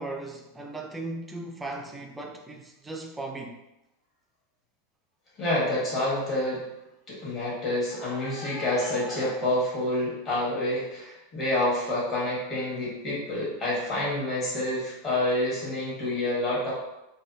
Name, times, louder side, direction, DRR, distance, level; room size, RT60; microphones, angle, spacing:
voice 1, 0.0-3.6, right 2 dB, 10° right, 2 dB, 0.4 m, -37 dB
voice 2, 5.4-6.6 7.1-16.7, left 1 dB, 30° left, -7 dB, 1.4 m, -28 dB
3.3 x 2.3 x 2.6 m, 0.91 s
supercardioid pair, 135°, 0 cm